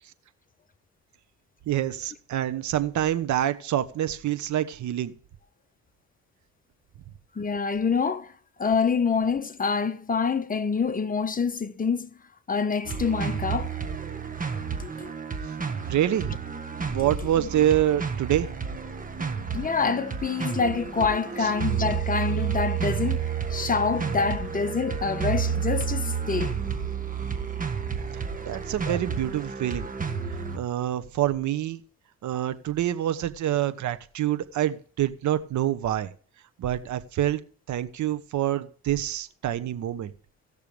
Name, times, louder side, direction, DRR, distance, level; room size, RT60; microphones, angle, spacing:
voice 1, 1.7-5.1 15.9-16.4 16.9-18.5 21.4-21.5 28.1-29.9 30.5-31.8 32.2-36.1 36.6-37.4 37.7-40.1, right 12 dB, 70° right, 1.1 m, -26 dB
voice 2, 7.3-8.3 8.6-12.1 12.5-13.7 14.8-15.1 19.5-26.6 28.9-29.0, left 5 dB, 30° left, 1.1 m, -26 dB
sound 1, 12.8-30.6, right 7 dB, 25° right, 1.6 m, -31 dB
17.5 x 6.7 x 3.4 m
cardioid pair, 90°, 30 cm